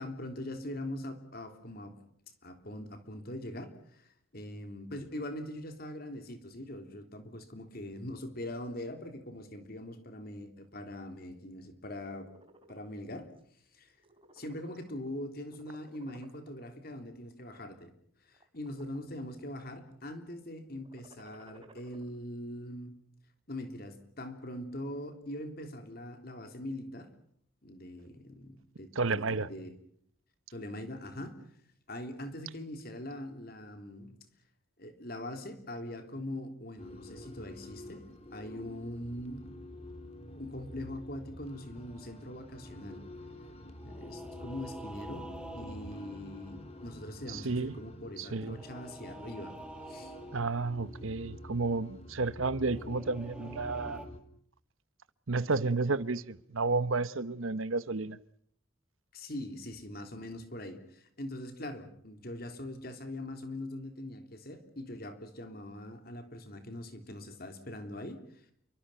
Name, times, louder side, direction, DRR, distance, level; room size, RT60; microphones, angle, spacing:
voice 1, 0.0-2.0 2.4-12.3 12.7-13.3 13.7-14.0 14.3-17.9 18.2-23.0 23.5-27.1 27.6-29.7 30.5-31.4 31.9-34.2 34.8-38.0 38.3-39.5 40.4-43.1 43.8-49.6 49.9-50.1 59.1-68.4, left 1 dB, 45° left, 3.5 m, -42 dB
sound 1, 12.1-12.9 13.4-13.6 13.9-15.2 15.5-16.6 17.3-17.7 18.3-19.1 19.4-19.9 20.8-22.0, right 2 dB, 25° right, 3.3 m, -59 dB
voice 2, 28.9-29.5 47.3-47.7 48.2-48.6 50.3-54.1 55.3-58.2, right 3 dB, 75° right, 1.0 m, -31 dB
sound 2, 36.8-54.2, left 1 dB, 30° left, 2.9 m, -48 dB
sound 3, 41.7-42.6 43.8-47.3 48.3-50.8 52.7-54.1, right 1 dB, 5° right, 2.2 m, -49 dB
29.5 x 24.0 x 5.7 m
head